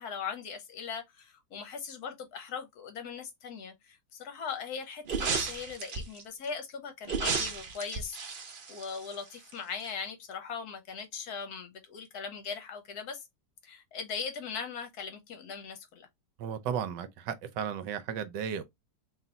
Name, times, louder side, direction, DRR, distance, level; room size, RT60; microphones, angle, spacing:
voice 1, 0.0-8.2 8.7-13.3 13.6-16.1, left 6 dB, 65° left, 1.1 m, -39 dB
sound 1, 5.0-6.2 7.0-9.5 9.8-9.9, right 5 dB, 55° right, 0.5 m, -33 dB
voice 2, 16.4-18.6, right 8 dB, 75° right, 1.2 m, -34 dB
3.2 x 2.9 x 3.8 m
omnidirectional pair, 2.0 m